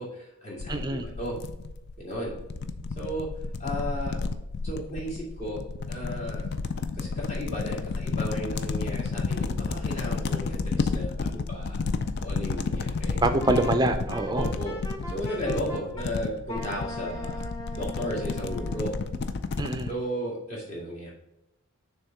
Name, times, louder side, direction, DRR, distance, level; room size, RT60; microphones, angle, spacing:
voice 1, 0.0-1.4 2.0-2.3 3.0-3.3 3.6-4.2 4.6-5.6 5.9-6.5 6.9-11.8 12.2-13.2 14.3-14.8 15.1-17.5 17.7-18.9 19.9-21.1, equal, 35° left, -5 dB, 2.3 m, -34 dB
sound 1, 0.6-19.9, left 4 dB, 50° left, 0.4 m, -31 dB
voice 2, 0.7-1.1 13.2-14.5 19.6-19.9, right 2 dB, 20° right, 7 dB, 0.4 m, -25 dB
Wind instrument woodwind instrument, 13.4-16.1 16.5-18.9, left 1 dB, 15° left, 0.8 m, -40 dB
6.5 x 3.6 x 5.7 m, 0.87 s
head